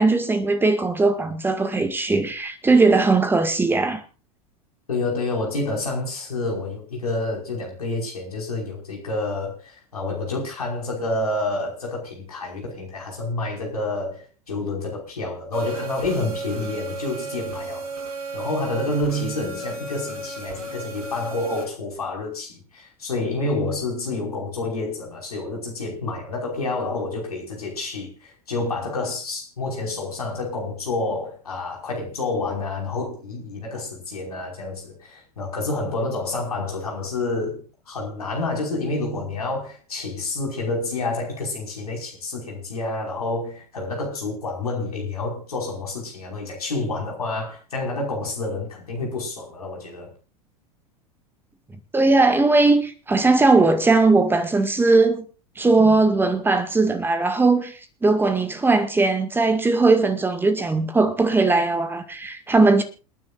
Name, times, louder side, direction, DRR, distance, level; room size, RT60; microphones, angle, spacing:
voice 1, 0.0-4.0 51.9-55.2 55.6-57.7 58.0-62.8, right 3 dB, 10° right, 2.0 m, -19 dB
voice 2, 4.9-17.9 18.3-50.1, left 2 dB, 70° left, 5.4 m, -28 dB
sound 1, 15.5-21.6, right 3 dB, 65° right, 3.7 m, -34 dB
29.0 x 9.6 x 2.6 m
figure-of-eight pair, 80°, 20 cm